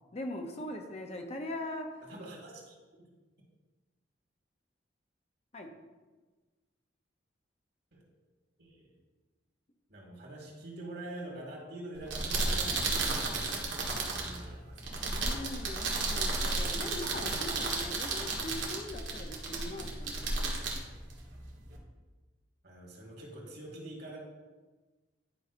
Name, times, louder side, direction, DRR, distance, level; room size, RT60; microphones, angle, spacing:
voice 1, 0.1-2.0 5.5-5.7 15.1-20.8, left 1 dB, 35° left, 3 dB, 0.6 m, -41 dB
voice 2, 2.0-2.8 7.9-8.0 8.6-8.9 9.9-15.0 22.6-24.2, right 1 dB, 55° right, -2 dB, 2.1 m, -45 dB
sound 1, 11.9-21.8, right 3 dB, 85° right, 1.4 m, -33 dB
10.5 x 5.4 x 2.6 m, 1.3 s
head